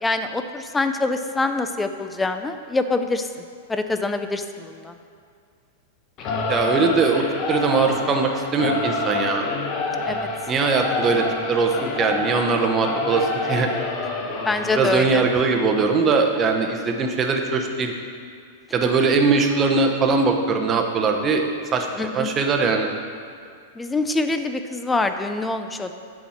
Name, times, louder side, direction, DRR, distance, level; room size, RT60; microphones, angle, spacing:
voice 1, 0.0-3.3 3.7-4.9 10.1-10.3 14.5-15.2 22.0-22.3 23.8-25.9, left 3 dB, 10° left, 8 dB, 0.4 m, -25 dB
Singing / Musical instrument, 6.2-15.1, left 3 dB, 35° left, 1.0 m, -27 dB
voice 2, 6.5-9.5 10.5-13.7 14.7-17.9 18.7-21.9 22.1-22.9, right 4 dB, 25° right, 3 dB, 0.8 m, -21 dB
8.4 x 6.0 x 4.3 m, 2.4 s
hypercardioid pair, 135°, 0 cm